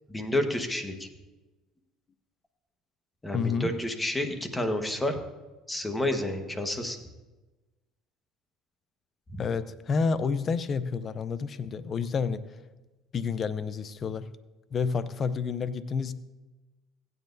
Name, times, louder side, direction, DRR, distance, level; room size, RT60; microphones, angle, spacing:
voice 1, 0.1-1.1 3.2-5.2 5.7-7.0 9.3-9.4, left 1 dB, 15° left, 5 dB, 1.4 m, -30 dB
voice 2, 3.3-3.7 9.4-12.4 13.1-14.3 14.7-16.1, left 5 dB, 40° left, 14 dB, 0.6 m, -29 dB
16.0 x 9.3 x 2.7 m, 1.1 s
supercardioid pair, 90°, 0 cm